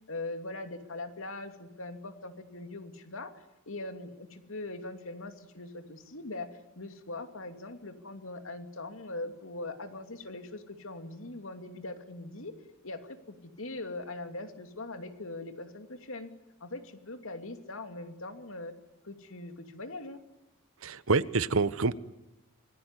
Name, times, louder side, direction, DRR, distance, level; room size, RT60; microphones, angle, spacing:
voice 1, 0.1-12.6 12.8-16.3 16.6-18.7 19.0-20.2, left 2 dB, 70° left, 7 dB, 2.8 m, -41 dB
voice 2, 20.8-21.9, right 3 dB, 75° right, 16 dB, 1.1 m, -27 dB
26.0 x 21.5 x 9.9 m, 0.95 s
head